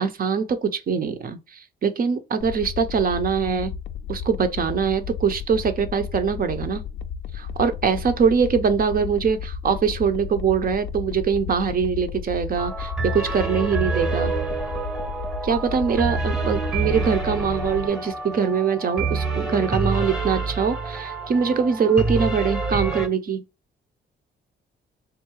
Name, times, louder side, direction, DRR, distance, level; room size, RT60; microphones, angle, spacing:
voice 1, 0.0-3.7 4.1-6.8 7.3-14.3 15.4-23.4, right 6 dB, 45° right, 0.7 m, -23 dB
sound 1, 2.4-17.9, left 7 dB, 70° left, 0.4 m, -34 dB
sound 2, 12.6-23.1, right 3 dB, ahead, 0.9 m, -27 dB
3.6 x 2.6 x 3.0 m
cardioid pair, 90°, 20 cm